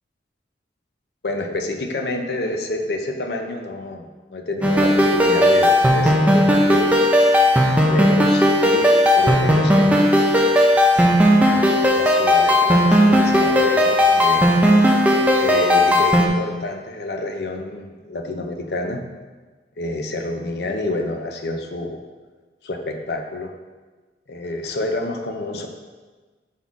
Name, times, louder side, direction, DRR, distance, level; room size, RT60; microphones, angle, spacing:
voice 1, 1.2-7.0 7.9-10.2 11.5-11.7 12.0-14.5 15.4-19.0 19.8-22.0 22.6-23.5 24.3-25.7, left 2 dB, 70° left, 4 dB, 0.7 m, -28 dB
sound 1, 4.6-16.3, equal, 10° right, 0.5 m, -16 dB
5.5 x 4.3 x 4.6 m, 1.3 s
head